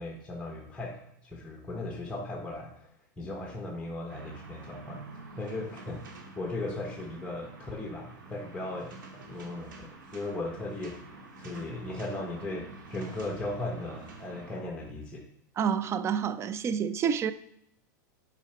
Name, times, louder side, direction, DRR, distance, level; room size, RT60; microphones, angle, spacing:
voice 1, 0.0-5.0 5.4-15.2, left 2 dB, 10° left, 1.1 m, -37 dB
sound 1, 4.1-14.6, right 3 dB, 85° right, 1.9 m, -48 dB
voice 2, 15.6-17.3, right 7 dB, 25° right, 0.4 m, -28 dB
7.1 x 5.0 x 4.4 m
hypercardioid pair, 120°, 11 cm